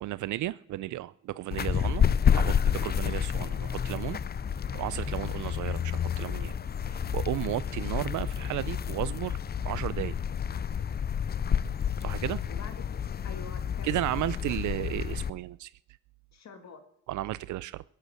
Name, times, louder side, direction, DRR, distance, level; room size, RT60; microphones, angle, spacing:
voice 1, 0.0-2.1 2.3-4.2 4.7-6.5 6.8-9.4 9.6-10.2 12.0-12.4 13.8-15.7 17.1-17.8, right 15 dB, 75° right, 17 dB, 0.6 m, -34 dB
sound 1, 1.5-15.3, left 8 dB, 35° left, 0.5 m, -29 dB
voice 2, 12.0-12.7 13.2-14.1 16.3-16.8, left 5 dB, 60° left, 8 dB, 2.1 m, -46 dB
16.5 x 8.7 x 7.8 m, 0.73 s
cardioid pair, 90°, 30 cm